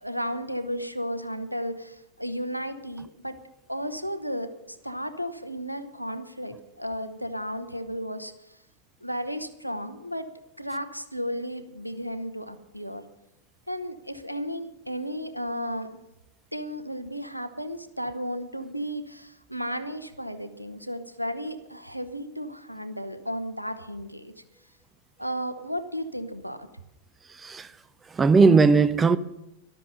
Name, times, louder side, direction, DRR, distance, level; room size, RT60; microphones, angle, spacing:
voice 1, 0.0-3.4 3.7-8.6 9.0-10.3 10.6-13.0 13.7-16.0 16.5-24.3 25.2-26.7, equal, 90° right, 1.0 m, -34 dB
voice 2, 27.4-27.7 28.1-29.2, right 4 dB, 15° right, 0.6 m, -18 dB
13.5 x 12.0 x 6.5 m
figure-of-eight pair, 90°, 0 cm